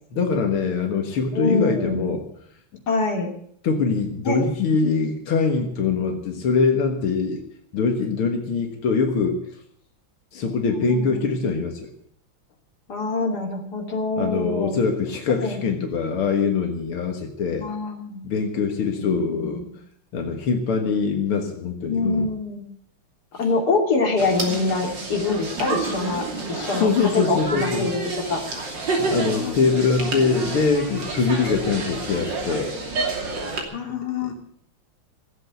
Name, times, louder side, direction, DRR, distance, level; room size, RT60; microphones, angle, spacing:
voice 1, 0.1-2.2 3.6-7.4 7.7-9.4 10.3-11.9 14.2-17.7 18.2-19.6 20.1-22.3 23.4-23.5 26.8-27.9 29.0-32.7 33.1-33.2 34.2-34.3, left 5 dB, 85° left, 4 dB, 2.4 m, -23 dB
voice 2, 1.3-2.2 2.9-3.3 4.2-4.4 10.7-11.3 12.9-14.8 15.4-15.6 17.6-18.2 18.9-19.6 21.8-22.6 23.4-28.0 28.3-28.4 29.3-30.1 33.7-34.3, left 3 dB, 50° left, 2 dB, 3.3 m, -25 dB
sound 1, 24.2-33.6, right 3 dB, 60° right, 3.5 m, -29 dB
17.0 x 8.2 x 9.3 m, 0.67 s
omnidirectional pair, 2.3 m